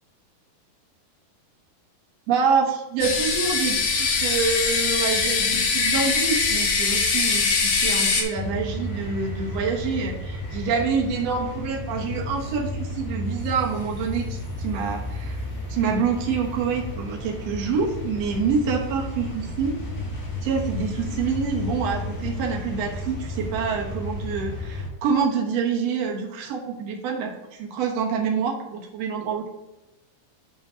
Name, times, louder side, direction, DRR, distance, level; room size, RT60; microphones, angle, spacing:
voice 1, 2.3-15.4 15.7-19.8 20.4-29.5, right 5 dB, 75° right, 0 dB, 1.5 m, -26 dB
Electric Kettle Shriek, 3.0-8.2, left 4 dB, 60° left, 2.5 m, -22 dB
sound 1, 8.3-24.9, left 1 dB, 85° left, 0.8 m, -33 dB
11.0 x 3.8 x 5.0 m, 0.99 s
omnidirectional pair, 4.7 m